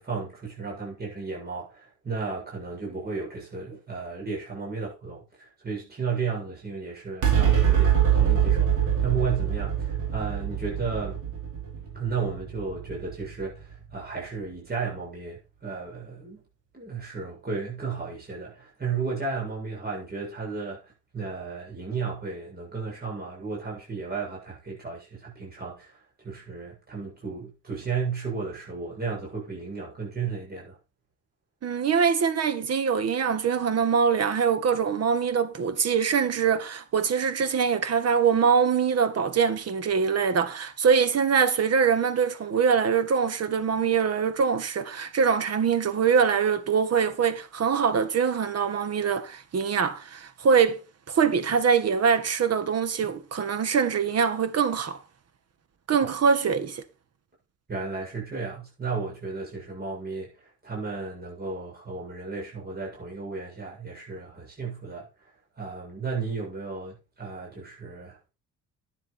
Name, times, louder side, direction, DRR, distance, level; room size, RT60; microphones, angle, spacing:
voice 1, 0.0-11.2 11.9-16.4 16.7-30.8 57.7-65.3 65.6-68.3, right 5 dB, 30° right, 7.4 m, -34 dB
sound 1, 7.2-13.9, right 9 dB, 75° right, 5.5 m, -24 dB
voice 2, 31.6-55.0 55.9-56.8, right 6 dB, 55° right, 1.8 m, -23 dB
11.0 x 9.6 x 4.5 m
cardioid pair, 90°, 30 cm